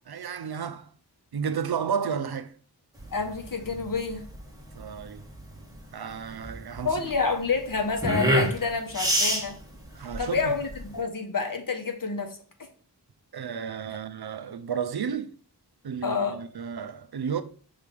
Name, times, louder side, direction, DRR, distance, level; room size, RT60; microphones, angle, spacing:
voice 1, 0.1-0.9 1.3-2.5 4.8-5.2 5.9-6.9 9.9-10.5 13.3-15.3 15.8-17.4, right 7 dB, 65° right, 0.6 m, -32 dB
sound 1, 3.0-11.0, equal, 10° right, 1.7 m, -28 dB
voice 2, 3.1-4.2 6.8-9.6 10.2-12.7 16.0-16.4, left 4 dB, 50° left, 1.3 m, -28 dB
5.7 x 3.3 x 5.2 m
wide cardioid pair, 80°, 41 cm